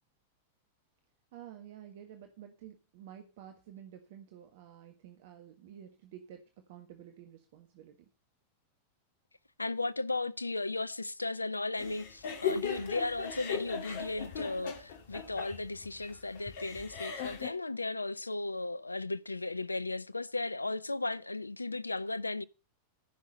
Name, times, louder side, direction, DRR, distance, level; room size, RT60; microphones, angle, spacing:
voice 1, 1.3-6.4 6.7-7.9, right 10 dB, 50° right, 1.5 m, -51 dB
voice 2, 9.6-22.4, left 2 dB, 80° left, 0.6 m, -35 dB
sound 1, 11.8-17.5, left 7 dB, 55° left, 2.4 m, -38 dB
14.5 x 6.4 x 5.3 m
figure-of-eight pair, 90°, 0 cm